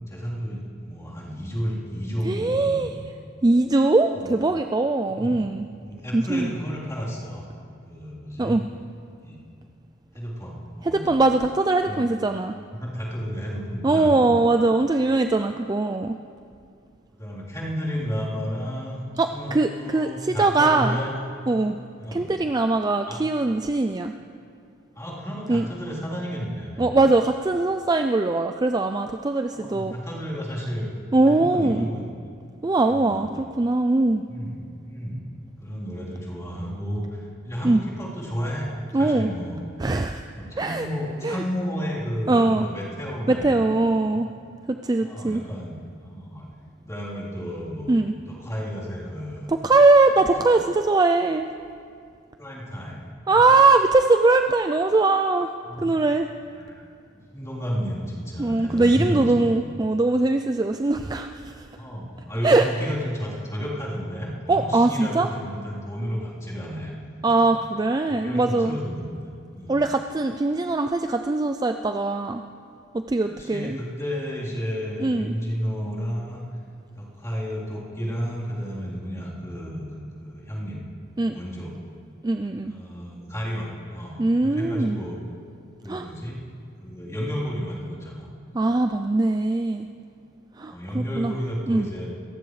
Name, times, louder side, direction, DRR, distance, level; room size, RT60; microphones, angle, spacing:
voice 1, 0.0-2.9 4.1-4.4 5.1-5.4 5.8-7.4 7.9-8.6 9.2-9.4 10.1-11.1 11.9-12.0 12.8-14.3 17.2-19.0 19.3-21.1 22.0-22.3 23.1-23.2 25.0-26.9 29.6-30.9 31.3-32.0 32.9-33.3 34.3-35.2 35.6-38.7 39.0-39.6 40.3-44.2 45.0-46.5 46.8-48.0 48.3-49.5 50.2-50.3 52.4-53.4 55.7-56.0 56.6-56.8 57.1-59.3 61.8-66.9 67.3-67.6 68.1-69.0 69.5-69.8 73.2-76.4 77.0-80.8 81.2-81.7 82.6-85.2 85.8-86.4 86.8-88.3 90.7-92.1, equal, 15° left, -7 dB, 3.6 m, -32 dB
voice 2, 2.2-2.9 3.4-5.7 6.1-6.5 8.4-8.6 10.8-12.5 13.8-16.2 19.2-21.0 21.5-21.8 22.1-24.1 25.5-25.7 26.8-29.9 31.1-31.9 32.6-34.2 37.6-37.8 38.9-39.3 39.8-40.3 40.6-40.9 41.2-41.4 42.3-42.7 43.3-44.3 44.7-45.4 47.9-48.1 49.5-51.5 53.3-55.5 55.8-56.3 58.4-61.7 62.4-62.7 64.5-65.3 67.2-68.8 69.7-72.4 72.9-73.8 75.0-75.3 81.2-81.3 82.2-82.7 84.2-85.0 85.9-86.1 88.5-89.9 90.6-91.4 91.7-91.9, right 2 dB, 20° right, 6 dB, 0.3 m, -21 dB
28.0 x 15.0 x 3.2 m, 2.3 s
head